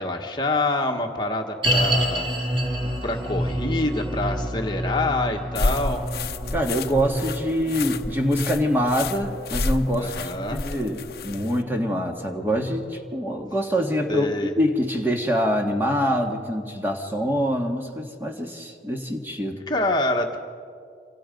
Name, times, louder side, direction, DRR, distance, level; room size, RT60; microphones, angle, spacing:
voice 1, 0.0-2.3 2.8-6.0 10.0-10.7 14.1-14.5 19.7-20.4, left 2 dB, 25° left, 2 dB, 1.5 m, -26 dB
sound 1, 1.6-12.9 13.2-13.3 13.9-14.0, right 1 dB, 30° right, 2.6 m, -29 dB
sound 2, 5.6-11.6, left 3 dB, 60° left, 0.8 m, -30 dB
voice 2, 6.5-19.6, equal, 10° right, 2 dB, 1.8 m, -25 dB
28.5 x 26.5 x 5.3 m, 2.2 s
head